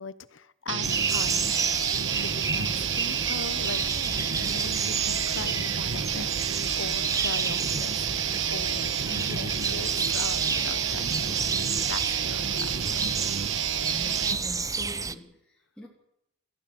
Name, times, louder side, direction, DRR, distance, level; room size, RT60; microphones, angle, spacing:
voice 1, 0.0-1.7 2.2-4.0 4.4-6.4 6.8-11.4 11.9-13.0, left 4 dB, 90° left, 15 dB, 1.1 m, -40 dB
sound 1, 0.7-14.4, right 8 dB, 75° right, 1.5 m, -29 dB
sound 2, 0.8-15.1, right 4 dB, 20° right, 0.8 m, -31 dB
voice 2, 13.8-15.9, left 1 dB, 5° left, -4 dB, 3.6 m, -43 dB
23.0 x 15.0 x 9.6 m, 0.80 s
head